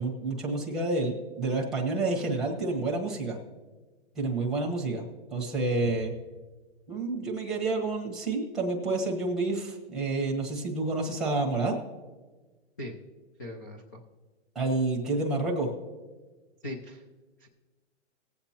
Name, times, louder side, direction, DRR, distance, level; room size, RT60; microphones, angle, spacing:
voice 1, 0.0-3.4 4.2-5.0 5.3-6.1 6.9-11.8 14.5-15.7, right 2 dB, ahead, -1 dB, 1.1 m, -29 dB
voice 2, 13.4-14.0 16.6-17.0 17.4-17.5, left 1 dB, 20° left, 2 dB, 0.4 m, -39 dB
19.5 x 7.9 x 2.9 m, 1.3 s
hypercardioid pair, 160°, 35 cm